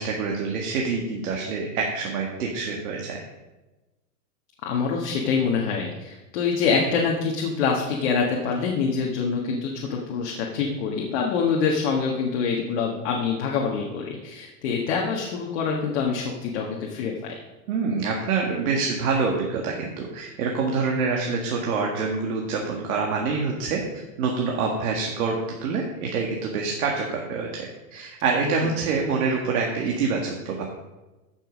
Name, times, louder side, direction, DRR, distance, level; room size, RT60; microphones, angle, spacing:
voice 1, 0.0-3.2 17.7-23.8 24.2-25.4 25.6-30.6, right 4 dB, 60° right, 0 dB, 2.0 m, -26 dB
voice 2, 4.6-17.3 28.4-28.7, left 5 dB, 45° left, -1 dB, 1.7 m, -25 dB
15.0 x 6.5 x 5.2 m, 1.1 s
supercardioid pair, 160°, 49 cm